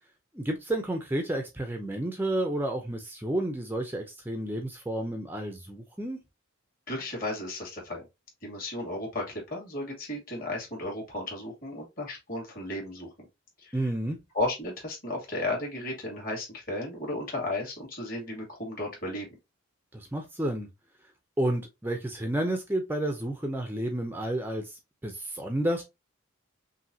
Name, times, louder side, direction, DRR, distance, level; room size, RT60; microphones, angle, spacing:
voice 1, 0.3-6.2 13.7-14.2 19.9-20.7 21.4-25.8, right 1 dB, 10° right, 0.5 m, -31 dB
voice 2, 6.9-8.0 8.4-13.1 13.6-13.8 14.3-19.3, left 2 dB, 45° left, 2.3 m, -34 dB
5.8 x 2.7 x 2.7 m
head